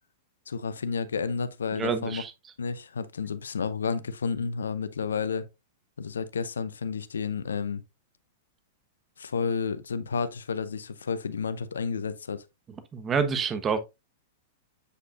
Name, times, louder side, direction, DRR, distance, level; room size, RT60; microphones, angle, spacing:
voice 1, 0.5-2.2 2.6-5.4 6.0-7.8 9.2-12.4, left 5 dB, 75° left, 0.7 m, -31 dB
voice 2, 1.7-2.3 12.9-13.8, right 6 dB, 25° right, 1.1 m, -27 dB
8.2 x 5.0 x 2.4 m
figure-of-eight pair, 100°, 0 cm